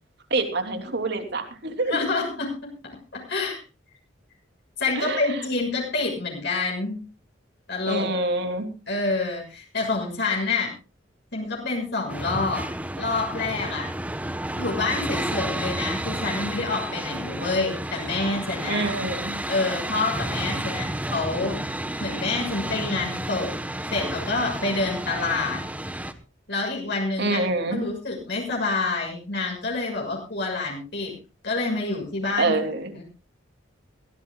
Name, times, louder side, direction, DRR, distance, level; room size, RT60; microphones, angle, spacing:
voice 1, 0.3-2.2 4.9-5.4 7.8-8.7 18.7-19.4 27.2-27.8 32.4-32.9, right 2 dB, 60° right, 5 dB, 3.1 m, -26 dB
voice 2, 1.9-3.6 4.8-7.0 7.7-8.1 8.9-10.7 11.3-13.9 14.6-18.9 19.5-21.7 22.0-23.6 23.9-25.6 26.5-27.4 27.7-31.2 31.4-32.5 32.9-33.0, left 3 dB, 65° left, -1 dB, 6.6 m, -27 dB
sound 1, 12.1-26.1, right 1 dB, 10° right, 1.2 m, -31 dB
23.0 x 16.0 x 2.4 m, 0.31 s
head